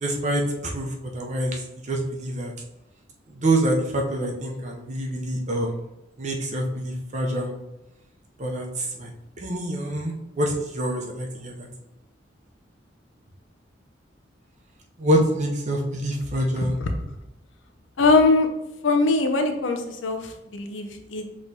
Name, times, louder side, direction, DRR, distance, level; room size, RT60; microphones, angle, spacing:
voice 1, 0.0-1.6 1.9-2.5 3.3-5.8 6.2-7.5 8.4-9.1 9.4-11.7 15.0-16.8, right 1 dB, 40° right, 0 dB, 0.6 m, -26 dB
voice 2, 18.0-18.5 18.8-20.2 20.5-21.3, left 3 dB, 85° left, 5 dB, 0.6 m, -21 dB
6.2 x 3.1 x 2.7 m, 0.94 s
head